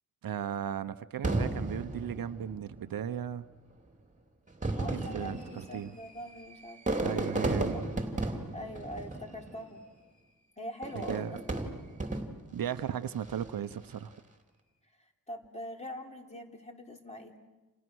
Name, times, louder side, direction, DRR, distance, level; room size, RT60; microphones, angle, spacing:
voice 1, 0.2-3.4 4.9-5.9 7.0-7.7 11.1-11.4 12.5-14.1, right 9 dB, 70° right, 0.9 m, -36 dB
Fireworks, 1.2-2.9 3.7-3.8 4.5-9.8 10.8-12.6 13.2-13.6, right 2 dB, 20° right, 3.0 m, -34 dB
voice 2, 4.7-7.2 7.7-7.8 8.5-9.8 10.6-11.4 15.3-17.4, left 1 dB, 20° left, 3.6 m, -43 dB
29.5 x 28.5 x 6.3 m
wide cardioid pair, 105°, 36 cm